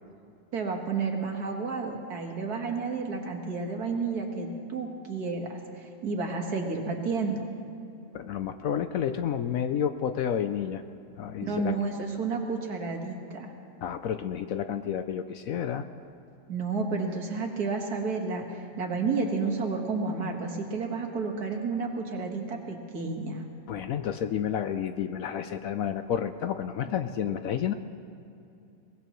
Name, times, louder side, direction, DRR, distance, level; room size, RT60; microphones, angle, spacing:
voice 1, 0.5-7.5 11.4-13.5 16.5-23.4, right 4 dB, 70° right, 2 dB, 2.0 m, -31 dB
voice 2, 8.1-10.8 11.2-11.7 13.8-15.9 23.7-27.7, left 9 dB, 70° left, 9 dB, 0.9 m, -30 dB
22.0 x 19.0 x 3.1 m, 2.7 s
omnidirectional pair, 1.7 m